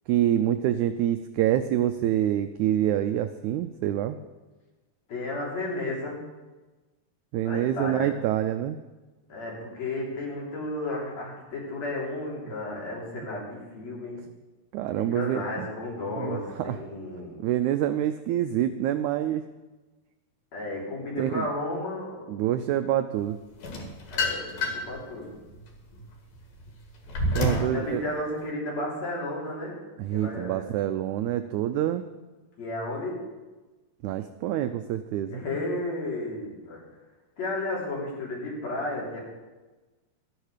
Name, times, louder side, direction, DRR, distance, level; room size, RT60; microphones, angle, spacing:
voice 1, 0.1-4.2 7.3-8.8 14.7-15.4 16.2-16.4 16.7-16.8 17.4-19.4 21.2-21.4 22.3-23.4 27.4-28.0 30.0-32.1 34.0-35.4, right 11 dB, 85° right, 10 dB, 1.7 m, -26 dB
voice 2, 5.1-6.2 7.4-8.1 9.3-14.2 15.0-17.4 20.5-22.2 24.1-25.4 27.6-29.8 30.1-30.6 32.6-33.2 35.3-36.8 37.4-39.2, left 2 dB, 50° left, -4 dB, 4.5 m, -33 dB
sound 1, 23.6-25.0 25.5-27.8, left 1 dB, 90° left, 3.9 m, -28 dB
13.5 x 10.5 x 6.5 m, 1.2 s
omnidirectional pair, 4.0 m